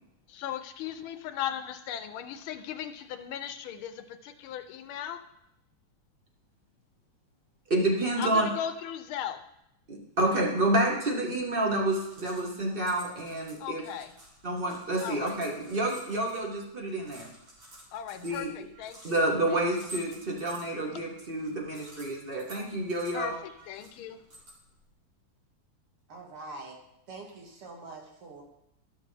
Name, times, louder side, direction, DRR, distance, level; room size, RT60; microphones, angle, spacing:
voice 1, 0.3-5.2 8.2-9.4 13.6-14.1 15.0-15.4 17.9-19.2 19.5-19.6 23.1-24.2, left 10 dB, 75° left, 9 dB, 1.4 m, -37 dB
voice 2, 7.7-8.5 9.9-13.8 14.4-17.3 18.2-18.5 19.0-23.3, right 1 dB, 30° right, -1 dB, 1.3 m, -29 dB
sound 1, 11.6-24.9, equal, 65° right, 3.3 m, -52 dB
voice 3, 26.1-26.8 27.1-28.4, right 3 dB, 90° right, 0 dB, 2.5 m, -44 dB
13.0 x 6.4 x 3.3 m, 0.80 s
omnidirectional pair, 2.4 m